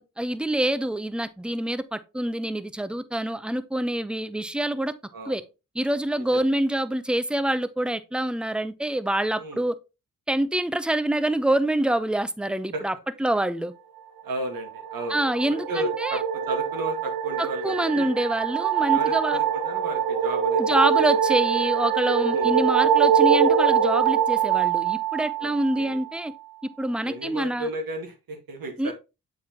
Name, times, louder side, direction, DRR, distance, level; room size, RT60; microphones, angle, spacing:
voice 1, 0.0-4.9 5.3-5.4 5.7-9.7 10.3-12.9 13.2-13.7 15.1-16.2 17.4-19.4 20.6-26.3 26.8-27.7 28.8-28.9, right 1 dB, 5° right, 0.6 m, -26 dB
voice 2, 6.2-6.5 9.4-9.6 12.7-12.8 14.2-15.2 15.7-16.2 16.5-18.1 18.9-20.8 22.3-22.5 25.4-26.0 27.0-28.9, right 1 dB, 70° right, 1.9 m, -33 dB
sound 1, 14.5-25.9, right 8 dB, 90° right, 0.7 m, -23 dB
7.3 x 4.7 x 2.9 m
cardioid pair, 55°, 36 cm